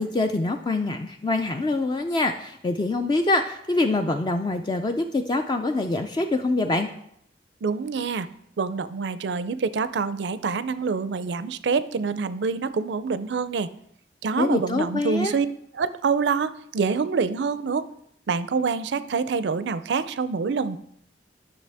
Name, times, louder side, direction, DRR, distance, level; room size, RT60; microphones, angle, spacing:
voice 1, 0.0-6.9 14.4-15.4, left 2 dB, 25° left, 6 dB, 0.4 m, -25 dB
voice 2, 7.6-8.3 8.6-13.7 14.2-15.5 15.7-17.9 18.3-20.8, right 5 dB, 70° right, 14 dB, 0.4 m, -26 dB
10.0 x 6.2 x 3.5 m, 0.70 s
head